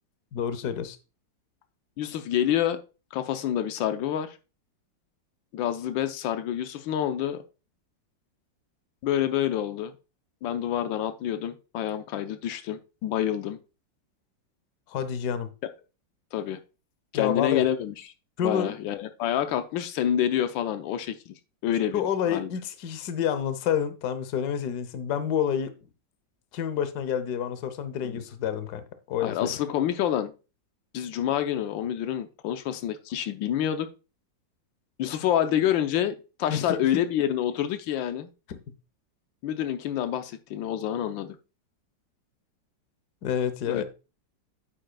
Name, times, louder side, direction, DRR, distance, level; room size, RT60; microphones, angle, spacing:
voice 1, 0.3-1.0 14.9-15.5 17.1-17.6 18.4-18.7 21.9-25.7 26.5-29.5 36.5-36.8 38.5-38.6 43.2-43.8, left 8 dB, 65° left, 11 dB, 1.3 m, -28 dB
voice 2, 2.0-2.8 3.1-4.4 5.5-7.4 9.0-9.9 10.4-13.6 15.6-15.7 16.3-16.6 17.1-17.9 18.4-22.0 22.3-22.5 28.0-28.2 29.2-30.3 30.9-33.9 35.0-38.3 39.4-41.4 43.7-43.8, left 10 dB, 90° left, 9 dB, 1.4 m, -27 dB
8.8 x 7.6 x 2.2 m, 0.32 s
omnidirectional pair, 2.0 m